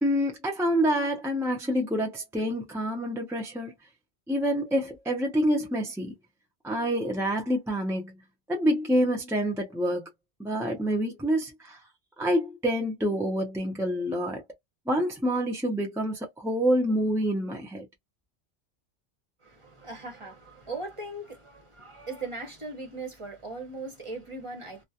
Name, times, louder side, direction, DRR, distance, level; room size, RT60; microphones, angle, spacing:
voice 1, 0.0-3.7 4.3-6.1 6.6-8.1 8.5-10.1 10.4-11.8 12.2-14.4 14.9-17.9, equal, 5° right, 0.4 m, -27 dB
voice 2, 19.4-24.8, right 3 dB, 30° right, 0.8 m, -39 dB
2.4 x 2.1 x 2.7 m
omnidirectional pair, 1.2 m